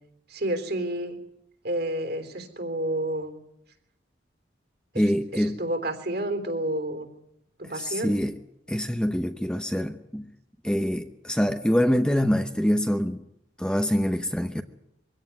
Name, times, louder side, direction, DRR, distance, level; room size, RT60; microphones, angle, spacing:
voice 1, 0.3-1.2 1.6-3.4 4.9-7.1 7.6-8.2, right 1 dB, 60° right, 3.5 m, -30 dB
voice 2, 5.0-5.6 7.7-8.3 8.7-10.3 10.6-13.2 13.6-14.6, equal, 5° left, 0.9 m, -25 dB
23.5 x 16.5 x 9.6 m
head